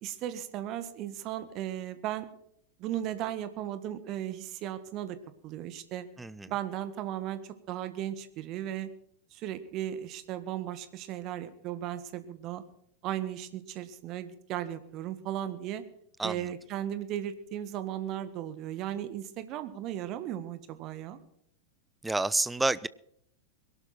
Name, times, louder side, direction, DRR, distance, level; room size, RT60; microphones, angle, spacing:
voice 1, 0.0-2.3 2.8-5.2 5.4-6.1 6.5-8.9 9.3-12.6 13.0-15.8 16.2-21.2, right 11 dB, 40° right, 13 dB, 1.6 m, -36 dB
voice 2, 6.2-6.5 16.2-16.5 22.0-22.9, right 2 dB, 10° right, 19 dB, 0.6 m, -29 dB
22.0 x 12.0 x 4.3 m, 0.70 s
figure-of-eight pair, 90°, 0 cm